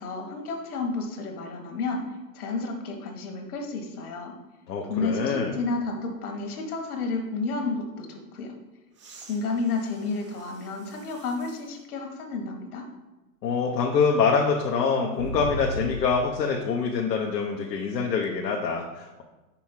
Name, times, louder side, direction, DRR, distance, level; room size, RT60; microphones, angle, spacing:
voice 1, 0.0-2.0 2.3-4.3 4.8-8.5 9.3-12.8, left 3 dB, 65° left, 3 dB, 1.6 m, -31 dB
voice 2, 4.7-5.5 13.4-19.2, left 5 dB, 85° left, 0 dB, 0.9 m, -25 dB
sound 1, 8.9-11.7 12.4-12.5 15.2-16.4 18.2-18.3, right 1 dB, 25° right, 0.3 m, -38 dB
5.6 x 4.6 x 4.4 m, 1.1 s
hypercardioid pair, 125°, 48 cm